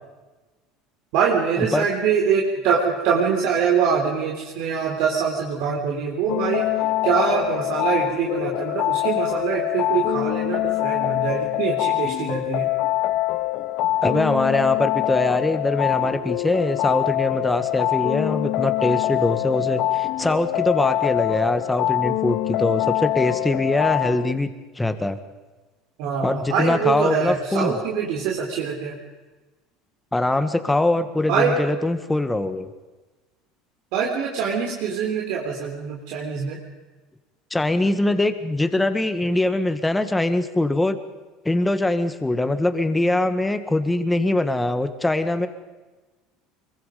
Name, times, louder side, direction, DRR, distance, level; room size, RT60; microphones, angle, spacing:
voice 1, 1.1-6.7 7.0-12.7 26.0-28.9 31.3-31.5 33.9-36.6, right 6 dB, 65° right, -1 dB, 3.8 m, -24 dB
sound 1, 6.3-24.3, left 16 dB, 55° left, 0.8 m, -24 dB
voice 2, 14.0-25.2 26.2-27.8 30.1-32.7 37.5-41.0 41.5-45.5, left 2 dB, 5° left, 9 dB, 1.7 m, -22 dB
25.0 x 23.0 x 5.3 m, 1.2 s
cardioid pair, 140°, 0 cm